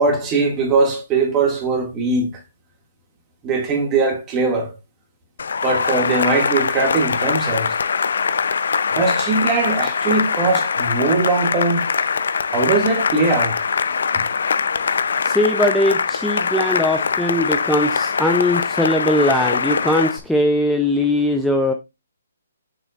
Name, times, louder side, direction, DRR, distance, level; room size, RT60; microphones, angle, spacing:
voice 1, 0.0-2.3 3.4-4.7 5.6-7.8 8.9-11.8 12.5-13.6 14.1-14.2, right 3 dB, 20° right, 2.2 m, -20 dB
Cheering / Applause, 5.4-20.2, left 5 dB, 65° left, 0.6 m, -22 dB
voice 2, 15.2-21.7, left 1 dB, ahead, 0.5 m, -20 dB
6.3 x 6.2 x 2.5 m
figure-of-eight pair, 140°, 0 cm